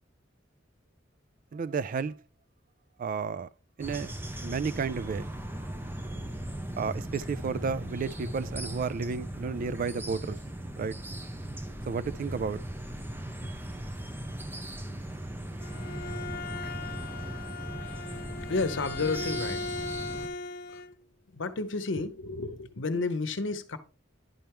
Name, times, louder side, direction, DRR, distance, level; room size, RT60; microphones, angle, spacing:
voice 1, 1.5-2.2 3.0-3.5 3.8-4.1 4.4-5.3 6.8-10.4 10.8-10.9 11.9-12.6, right 5 dB, 45° right, 0.3 m, -32 dB
sound 1, 3.8-20.3, right 1 dB, 10° right, 0.8 m, -38 dB
Bowed string instrument, 15.4-20.9, left 4 dB, 55° left, 0.5 m, -38 dB
voice 2, 17.8-19.6 20.7-20.8 21.3-23.8, left 3 dB, 85° left, 0.8 m, -32 dB
10.5 x 4.4 x 3.4 m
head